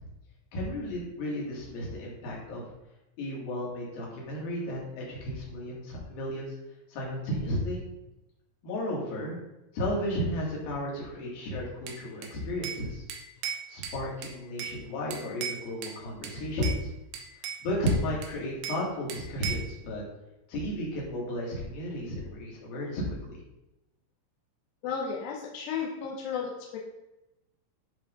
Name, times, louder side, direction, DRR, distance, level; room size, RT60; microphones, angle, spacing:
voice 1, 0.5-2.6 3.2-6.5 6.9-7.8 8.6-9.4 9.7-13.0 13.7-16.9 17.6-20.0 20.5-23.0 23.3-23.4, left 1 dB, 55° left, -4 dB, 3.6 m, -33 dB
Bell / Glass, 11.9-12.8 13.1-14.8 15.1-16.0 16.2-16.8 17.1-18.8 19.1-19.7, right 8 dB, 75° right, 2.4 m, -37 dB
voice 2, 24.8-26.8, left 6 dB, 80° left, -2 dB, 2.5 m, -33 dB
11.5 x 4.9 x 3.9 m, 0.96 s
omnidirectional pair, 5.9 m